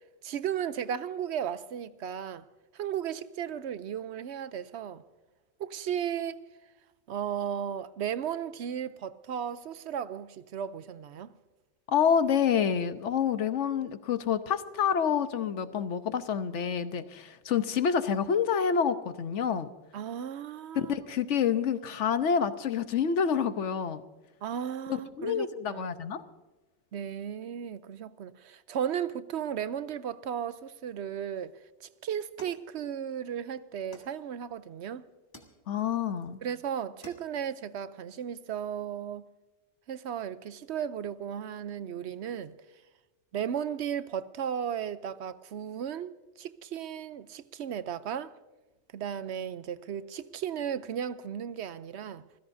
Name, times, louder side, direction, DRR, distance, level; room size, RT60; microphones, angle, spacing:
voice 1, 0.2-2.4 2.7-5.0 5.6-6.4 7.1-11.3 19.9-20.9 24.4-25.9 26.9-31.5 31.8-35.0 36.4-39.3 39.9-42.5 43.3-48.3 48.9-52.2, right 9 dB, 70° right, 0.9 m, -35 dB
voice 2, 11.9-19.7 20.7-24.0 24.9-26.2 35.7-36.4, left 7 dB, 80° left, 1.2 m, -28 dB
sound 1, 32.4-33.3 33.9-34.7 35.3-36.0 36.5-36.6 36.8-37.6, left 1 dB, 20° left, 1.6 m, -54 dB
27.0 x 16.0 x 2.7 m
omnidirectional pair, 1.2 m